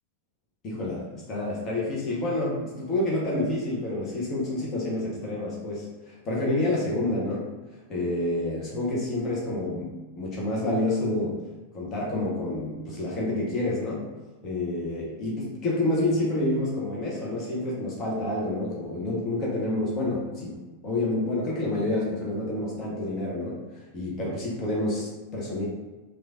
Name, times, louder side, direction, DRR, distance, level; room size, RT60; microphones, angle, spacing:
voice 1, 0.6-7.5 7.9-9.9 10.1-11.4 11.7-14.1 14.4-25.7, left 1 dB, 30° left, -5 dB, 0.7 m, -28 dB
3.0 x 2.2 x 2.5 m, 1.2 s
figure-of-eight pair, 90°, 0 cm